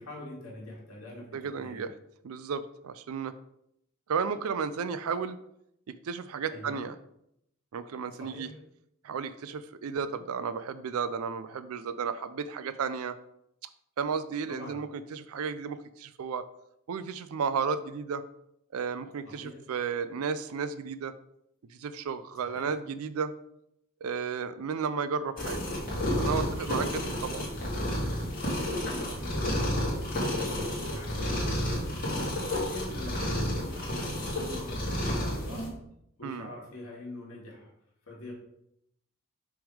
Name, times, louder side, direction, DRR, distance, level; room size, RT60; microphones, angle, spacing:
voice 1, 0.0-1.3 1.5-1.8 6.5-6.8 8.2-8.5 14.5-14.8 19.2-19.6 22.4-22.7 28.6-29.8 30.2-31.6 32.4-35.7 36.2-37.7 38.1-38.3, left 1 dB, 75° left, -3 dB, 2.3 m, -44 dB
voice 2, 1.3-1.9 2.2-3.3 4.1-5.4 6.0-7.0 7.7-8.5 9.0-13.2 14.0-16.5 16.9-18.2 18.7-21.1 21.7-23.3 24.0-25.6 26.2-27.5 36.2-36.5, right 6 dB, 85° right, 13 dB, 0.4 m, -33 dB
sound 1, 25.4-35.7, left 1 dB, 40° left, 2.0 m, -31 dB
6.1 x 3.6 x 4.8 m, 0.76 s
head